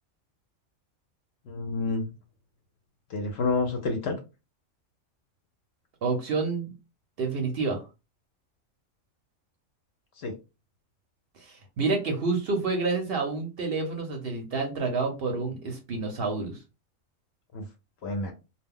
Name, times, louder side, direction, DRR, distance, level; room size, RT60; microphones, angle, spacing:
voice 1, 1.5-2.1 3.1-4.2 10.2-10.3 17.5-17.6 18.0-18.3, left 3 dB, 65° left, 4 dB, 0.7 m, -29 dB
voice 2, 6.0-6.7 7.2-7.8 11.4-16.6, right 3 dB, 60° right, 3 dB, 0.7 m, -29 dB
2.2 x 2.0 x 3.6 m, 0.28 s
omnidirectional pair, 1.4 m